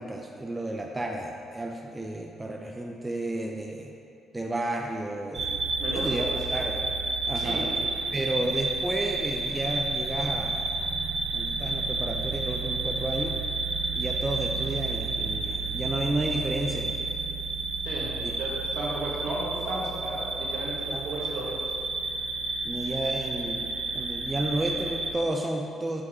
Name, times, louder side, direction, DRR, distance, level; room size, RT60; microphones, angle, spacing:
voice 1, 0.0-3.9 4.3-5.5 5.9-6.8 7.2-7.7 8.1-10.8 11.3-13.4 13.9-17.0 18.2-18.3 20.9-21.2 22.6-26.0, right 1 dB, 15° right, 1 dB, 0.5 m, -32 dB
sound 1, 5.3-25.1, right 3 dB, 50° right, 0.8 m, -31 dB
voice 2, 5.8-6.5 7.4-7.7 17.9-18.1 18.4-21.5, right 2 dB, 70° right, -5 dB, 1.6 m, -34 dB
7.4 x 4.2 x 4.3 m, 2.5 s
cardioid pair, 90°, 0 cm